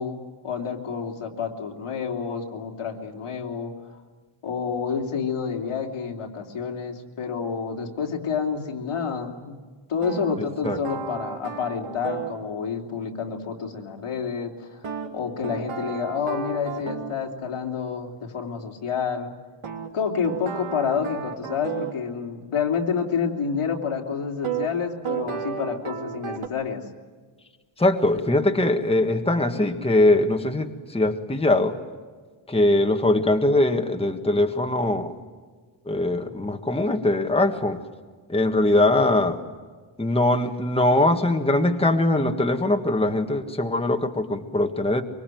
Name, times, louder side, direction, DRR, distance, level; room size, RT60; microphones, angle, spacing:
voice 1, 0.0-3.7 4.4-9.6 9.9-19.3 19.9-26.8, left 6 dB, 85° left, 2 dB, 3.5 m, -29 dB
sound 1, 10.0-12.4 14.8-17.2 19.6-22.0 24.4-24.7 25.0-26.5, right 7 dB, 85° right, 3.4 m, -32 dB
voice 2, 27.8-31.7 32.5-35.1 35.9-37.8 38.3-39.4 40.0-45.0, left 2 dB, 10° left, 5 dB, 1.6 m, -21 dB
24.5 x 24.5 x 9.3 m, 1.5 s
wide cardioid pair, 165°, 50 cm